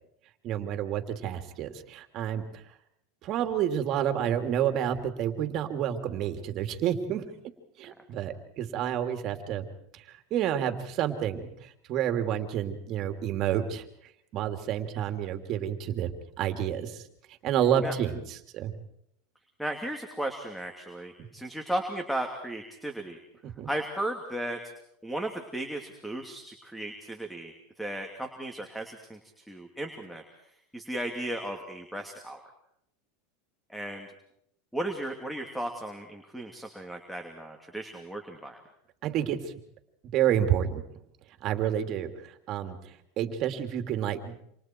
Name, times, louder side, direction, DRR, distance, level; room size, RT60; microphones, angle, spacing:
voice 1, 0.4-2.4 3.2-7.2 7.8-9.7 9.9-10.0 10.3-13.8 14.3-16.1 16.4-17.0 17.4-18.7 23.4-23.7 39.0-39.5 40.1-40.8 41.4-42.8 43.2-44.3, right 10 dB, 45° right, 7 dB, 2.8 m, -29 dB
voice 2, 19.6-23.2 23.7-24.6 25.0-27.5 27.8-30.2 30.7-32.4 33.7-34.1 34.7-38.6, right 1 dB, ahead, 4 dB, 2.8 m, -35 dB
28.5 x 27.0 x 4.6 m, 0.74 s
hypercardioid pair, 105°, 0 cm